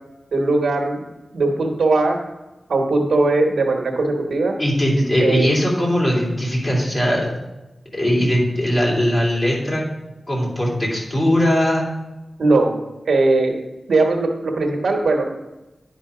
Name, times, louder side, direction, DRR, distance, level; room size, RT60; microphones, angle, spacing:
voice 1, 0.3-1.0 1.3-2.2 2.7-4.5 5.2-5.5 12.4-12.7 13.1-13.6 13.9-15.3, right 2 dB, 85° right, 0 dB, 1.2 m, -19 dB
voice 2, 4.6-7.3 7.9-9.8 10.3-11.9, equal, 35° left, -4 dB, 3.1 m, -19 dB
9.9 x 5.2 x 4.9 m, 1.1 s
wide cardioid pair, 95°, 0 cm